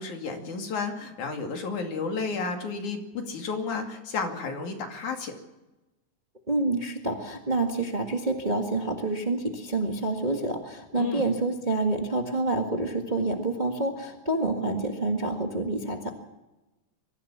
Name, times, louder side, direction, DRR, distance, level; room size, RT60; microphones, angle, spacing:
voice 1, 0.0-5.3 10.9-11.3, left 4 dB, 75° left, 3 dB, 3.9 m, -32 dB
voice 2, 6.5-16.1, right 2 dB, 20° right, 3 dB, 1.3 m, -28 dB
23.5 x 15.0 x 7.3 m, 1.0 s
omnidirectional pair, 3.4 m